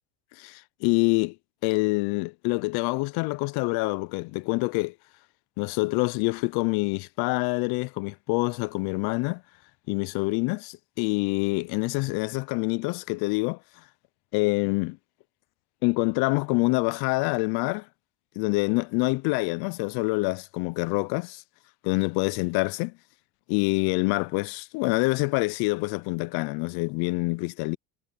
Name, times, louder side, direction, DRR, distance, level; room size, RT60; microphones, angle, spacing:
voice 1, 0.4-1.4 1.6-4.9 5.6-9.4 9.9-13.6 14.3-15.0 15.8-17.9 18.4-21.4 21.8-22.9 23.5-27.8, left 27 dB, 70° left, 0.5 m, -26 dB
supercardioid pair, 105°, 40 cm